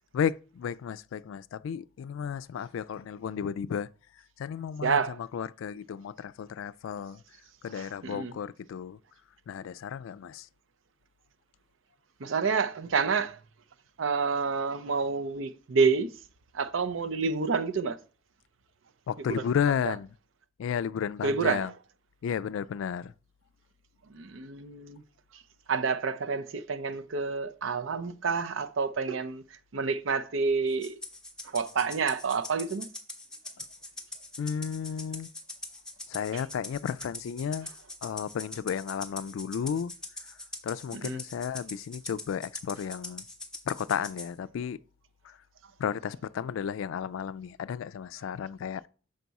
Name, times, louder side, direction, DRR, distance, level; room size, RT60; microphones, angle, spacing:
voice 1, 0.1-3.9 4.4-7.2 7.6-9.0 9.5-10.5 19.1-20.1 20.6-21.7 22.2-23.1 34.4-35.3 36.1-37.7 38.0-39.9 40.6-43.2 43.7-44.8 45.2-45.4 45.8-48.9, left 7 dB, 90° left, 0.3 m, -33 dB
voice 2, 4.8-5.1 7.8-8.3 12.2-13.4 14.0-16.1 16.5-18.0 21.2-21.7 24.1-25.0 25.7-29.4 29.7-30.9 31.5-32.9 41.0-41.2, right 5 dB, 80° right, 0.6 m, -28 dB
Rattle (instrument), 30.8-44.3, left 2 dB, 5° left, 0.9 m, -42 dB
6.6 x 4.0 x 4.7 m
head